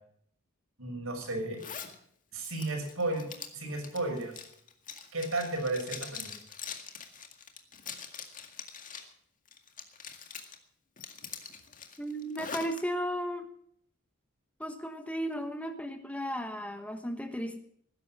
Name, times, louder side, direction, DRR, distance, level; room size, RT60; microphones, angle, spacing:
voice 1, 0.8-1.6 2.3-3.3 3.5-4.3 5.1-6.3, right 2 dB, 75° right, 2 dB, 6.4 m, -33 dB
Zipper (clothing), 1.6-1.9 2.4-9.1 9.5-10.6 11.0-12.8, left 7 dB, 40° left, 2.0 m, -44 dB
voice 2, 12.0-13.5 14.6-17.6, equal, 5° left, 7 dB, 1.2 m, -35 dB
19.0 x 11.0 x 6.0 m, 0.65 s
head